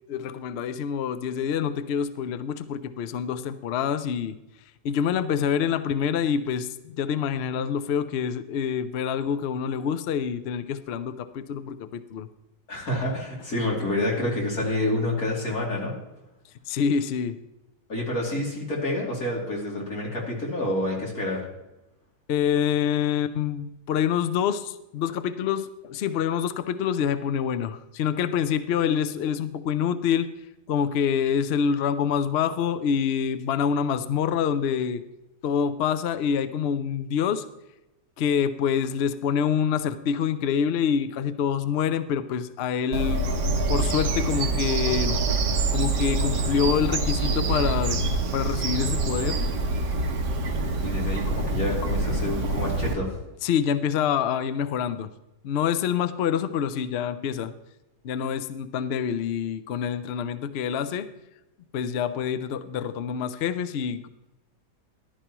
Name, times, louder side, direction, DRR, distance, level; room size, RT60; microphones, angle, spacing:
voice 1, 0.1-4.4 4.8-12.3 16.7-17.4 22.3-30.3 30.7-35.0 35.4-37.4 38.2-43.3 43.7-45.2 45.7-48.0 48.3-49.4 53.4-55.1 55.4-57.5 58.0-61.1 61.7-64.1, left 7 dB, 80° left, 12 dB, 0.5 m, -26 dB
voice 2, 12.7-15.9 17.9-21.4 50.8-53.1, left 1 dB, 55° left, -3 dB, 3.3 m, -28 dB
Bird vocalization bird call bird song, 42.9-52.9, right 2 dB, 85° right, 1.7 m, -25 dB
14.5 x 11.5 x 3.0 m, 0.94 s
omnidirectional pair, 1.8 m